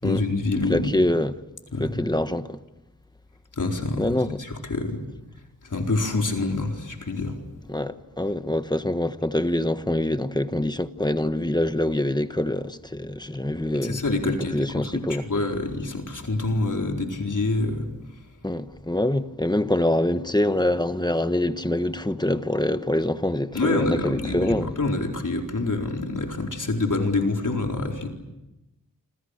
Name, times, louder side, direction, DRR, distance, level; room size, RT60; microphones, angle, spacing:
voice 1, 0.0-0.9 1.7-2.0 3.6-5.0 5.6-7.4 13.8-17.9 23.5-28.1, left 2 dB, 60° left, 4.5 m, -26 dB
voice 2, 0.7-1.3 1.8-2.6 4.0-4.4 7.7-15.3 18.4-24.7, left 1 dB, 10° left, 1.3 m, -25 dB
28.0 x 27.0 x 6.7 m
wide cardioid pair, 75°, 35 cm